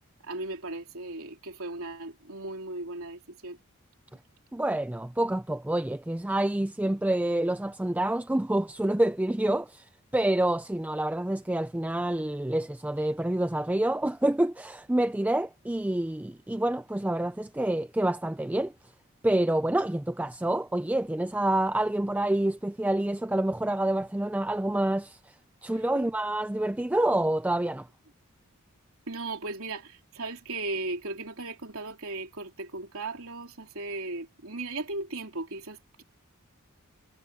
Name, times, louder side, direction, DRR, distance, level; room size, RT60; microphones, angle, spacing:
voice 1, 0.2-3.6 25.9-26.0 29.1-36.0, right 2 dB, 75° right, 3.3 m, -37 dB
voice 2, 4.5-18.7 19.2-25.3 25.6-27.9, right 1 dB, 5° right, 0.3 m, -27 dB
head